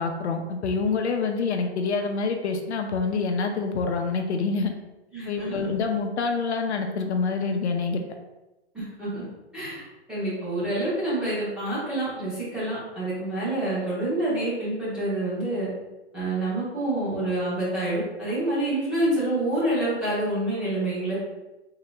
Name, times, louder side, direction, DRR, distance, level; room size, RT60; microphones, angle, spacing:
voice 1, 0.0-4.7 5.3-8.0, left 4 dB, 75° left, 4 dB, 0.7 m, -26 dB
voice 2, 5.1-5.7 8.7-9.2 9.5-9.8 10.1-15.7 16.1-21.2, right 1 dB, 5° right, -11 dB, 0.9 m, -27 dB
3.8 x 2.8 x 3.3 m, 1.0 s
hypercardioid pair, 165°, 34 cm